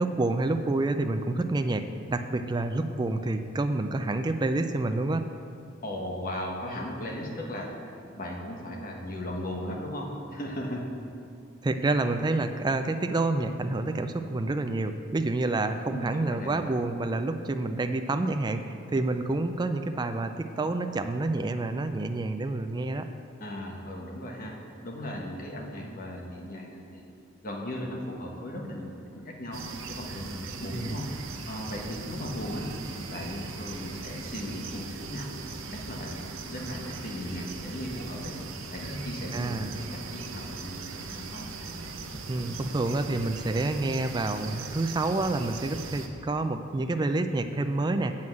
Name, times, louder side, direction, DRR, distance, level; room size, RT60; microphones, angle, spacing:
voice 1, 0.0-5.3 11.6-23.1 30.7-31.0 39.3-39.8 42.3-48.1, right 2 dB, 20° right, 7 dB, 0.3 m, -28 dB
voice 2, 5.8-7.7 8.1-10.9 15.8-16.5 23.4-27.0 27.4-31.1 31.5-32.7 33.0-35.3 35.7-36.2 36.5-38.3 38.7-41.5, left 1 dB, 45° left, 0 dB, 1.3 m, -37 dB
sound 1, 29.5-46.1, right 3 dB, 70° right, 0.8 m, -39 dB
7.8 x 5.7 x 7.5 m, 2.5 s
head